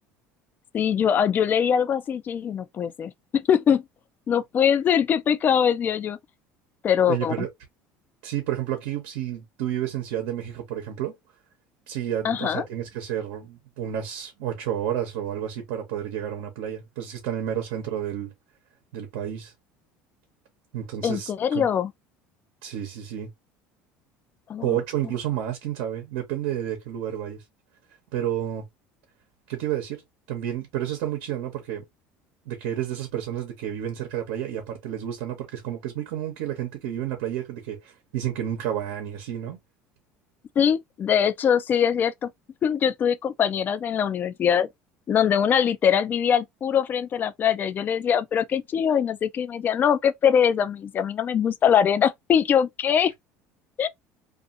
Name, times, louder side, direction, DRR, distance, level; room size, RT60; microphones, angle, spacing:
voice 1, 0.7-3.8 4.3-6.2 6.8-7.3 12.2-12.6 21.0-21.9 24.5-24.7 40.6-42.3 42.6-44.7 45.1-53.1 53.8-53.9, left 8 dB, 35° left, 0.4 m, -22 dB
voice 2, 7.1-7.5 8.2-11.1 11.9-18.3 18.9-19.5 20.7-21.7 22.6-23.3 24.6-27.4 28.1-28.7 29.5-30.0 30.3-31.8 32.5-39.6, right 11 dB, 80° right, 0.9 m, -30 dB
2.5 x 2.5 x 2.5 m
supercardioid pair, 110°, 6 cm